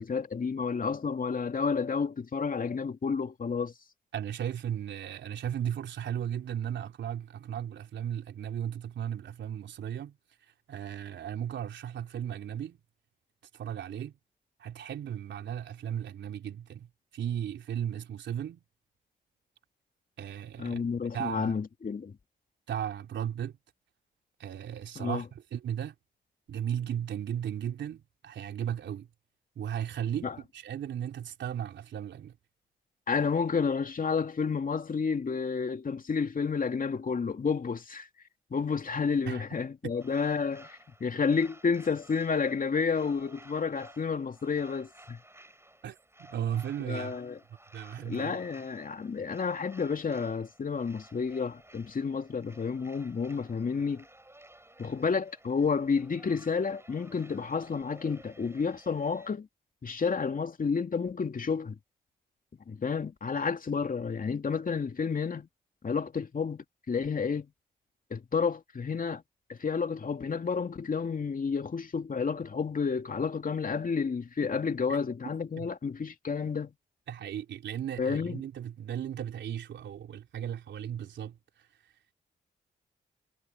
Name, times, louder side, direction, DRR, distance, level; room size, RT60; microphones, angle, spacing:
voice 1, 0.0-3.7 20.6-22.2 25.0-25.2 30.2-30.4 33.1-38.1 38.5-45.2 46.9-47.4 48.0-54.0 54.8-59.5 59.8-61.8 62.7-65.5 65.8-67.5 68.1-69.2 69.5-76.7 78.0-78.4, left 5 dB, 45° left, 2.6 m, -30 dB
voice 2, 4.1-10.2 10.7-12.8 13.5-14.1 14.6-18.6 20.2-20.8 21.1-21.5 22.7-23.5 24.4-25.9 26.5-29.1 29.6-32.3 39.3-39.4 39.8-39.9 45.8-47.2 47.7-48.4 75.6-75.7 77.1-81.4, right 9 dB, 70° right, 3.8 m, -36 dB
sound 1, 40.0-59.3, right 1 dB, 15° right, 7.4 m, -55 dB
hypercardioid pair, 45°, 19 cm